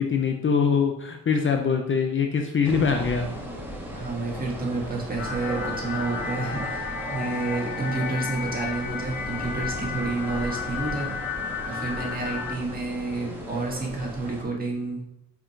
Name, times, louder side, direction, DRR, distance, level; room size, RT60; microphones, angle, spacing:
voice 1, 0.0-3.3, left 6 dB, 35° left, 4 dB, 0.6 m, -23 dB
sound 1, 2.6-14.4, equal, 5° right, 1.4 m, -37 dB
voice 2, 3.9-11.1 11.7-15.0, right 3 dB, 25° right, -2 dB, 1.8 m, -30 dB
sound 2, 5.2-12.5, left 5 dB, 55° left, 2.5 m, -33 dB
4.9 x 4.7 x 4.5 m, 0.81 s
cardioid pair, 95°, 36 cm